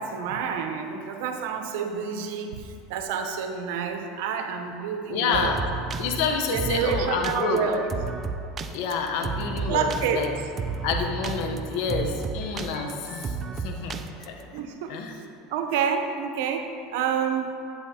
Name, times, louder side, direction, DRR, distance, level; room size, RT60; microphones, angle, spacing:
voice 1, 0.0-5.6 6.5-7.8 9.7-10.3 14.5-17.6, right 7 dB, 75° right, 5 dB, 0.8 m, -28 dB
voice 2, 5.1-5.6 6.0-7.6 8.7-10.3 10.8-14.4 14.9-15.2, left 5 dB, 65° left, 3 dB, 0.9 m, -28 dB
sound 1, 5.3-14.4, right 4 dB, 35° right, 0.4 m, -33 dB
9.6 x 8.8 x 2.8 m, 2.5 s
supercardioid pair, 105°, 0 cm